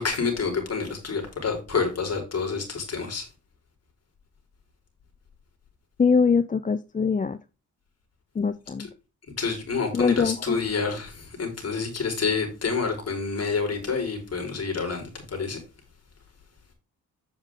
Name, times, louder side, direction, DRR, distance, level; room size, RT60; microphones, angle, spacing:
voice 1, 0.0-3.3 9.4-15.6, left 5 dB, 50° left, 2 dB, 4.8 m, -28 dB
voice 2, 6.0-7.4 8.3-8.9 9.9-10.6, left 5 dB, 25° left, 14 dB, 0.5 m, -23 dB
9.0 x 7.2 x 3.7 m, 0.29 s
cardioid pair, 75°, 33 cm